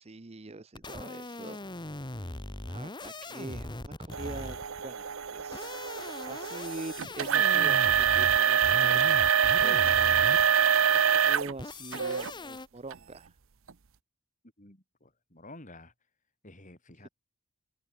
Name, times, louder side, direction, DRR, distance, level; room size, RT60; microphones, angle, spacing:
voice 1, 0.0-1.6 2.7-3.7 4.0-5.7 6.3-10.2 10.8-13.4, right 2 dB, 30° right, 0.7 m, -44 dB
sound 1, 0.8-4.8 5.4-10.6 11.6-12.7, left 1 dB, 20° left, 1.4 m, -40 dB
sound 2, 4.1-11.5 11.9-12.3 12.9-13.0 13.7-13.8, right 8 dB, 65° right, 0.8 m, -25 dB
voice 2, 14.6-15.9 16.4-17.1, left 2 dB, 35° left, 5.7 m, -51 dB
open air
head